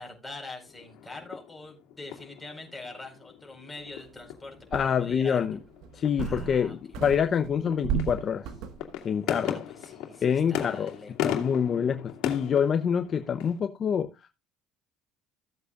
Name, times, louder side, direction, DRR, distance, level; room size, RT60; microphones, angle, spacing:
voice 1, 0.0-5.5 6.2-6.7 9.1-11.1, left 2 dB, 10° left, 1 dB, 4.7 m, -44 dB
sound 1, 0.7-13.6, left 11 dB, 75° left, 2.4 m, -38 dB
sound 2, 4.1-4.2 4.7-5.3 5.8-6.7 6.9-8.9, right 7 dB, 75° right, 1.5 m, -34 dB
voice 2, 4.7-5.6 5.9-8.5 9.0-9.6 10.2-10.9 11.2-14.3, left 7 dB, 40° left, 8 dB, 0.8 m, -26 dB
15.5 x 7.9 x 2.5 m, 0.24 s
cardioid pair, 105°, 0 cm